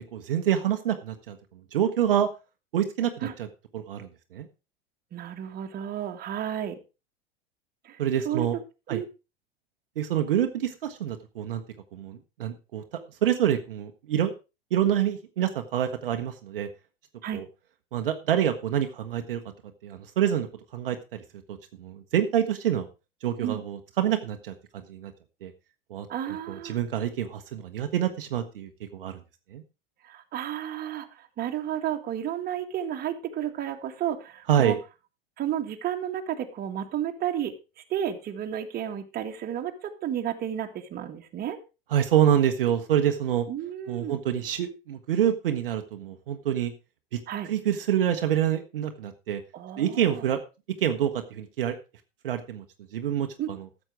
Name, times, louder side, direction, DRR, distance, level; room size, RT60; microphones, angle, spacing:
voice 1, 0.0-1.4 1.7-2.3 2.7-3.5 3.7-4.5 8.0-8.6 8.9-9.0 10.0-11.6 11.9-14.3 14.7-16.7 17.3-17.4 17.9-19.4 19.8-20.5 20.7-21.2 21.5-22.9 23.2-25.1 25.4-25.5 25.9-29.2 29.5-29.6 34.5-34.8 41.9-43.5 43.9-46.7 47.1-47.2 47.4-49.4 49.8-50.4 50.8-51.8 52.2-52.6 52.9-53.7, right 10 dB, 65° right, 6 dB, 1.2 m, -27 dB
voice 2, 5.1-6.8 7.8-8.0 8.3-8.5 8.9-9.1 17.2-17.4 23.4-23.6 26.1-26.8 30.0-34.8 35.4-37.5 37.9-41.6 43.5-44.2 47.3-47.5 49.5-50.2 53.4-53.5, right 10 dB, 30° right, 5 dB, 1.9 m, -32 dB
13.5 x 7.6 x 4.8 m, 0.30 s
figure-of-eight pair, 85°, 29 cm